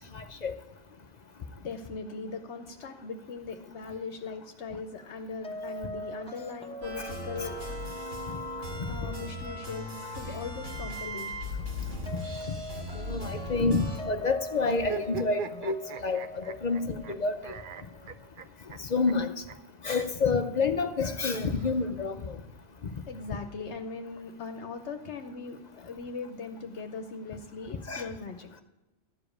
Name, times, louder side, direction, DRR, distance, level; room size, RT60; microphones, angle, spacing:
voice 1, 0.1-0.5 7.4-7.5 12.9-15.8 16.0-17.5 18.9-19.3 19.8-22.4 27.9-28.1, left 4 dB, 45° left, 8 dB, 0.6 m, -28 dB
voice 2, 1.6-7.6 8.9-11.3 23.1-28.5, left 4 dB, 70° left, 6 dB, 1.0 m, -39 dB
sound 1, 5.4-18.3, right 1 dB, 5° left, 0.9 m, -43 dB
sound 2, 6.8-14.0, left 1 dB, 75° right, 2.9 m, -38 dB
sound 3, 14.6-17.1 17.4-18.8 19.1-19.2 19.5-19.6 19.9-20.0 21.1-22.1, right 8 dB, 55° right, 0.7 m, -42 dB
13.0 x 5.1 x 8.5 m, 1.1 s
omnidirectional pair, 1.2 m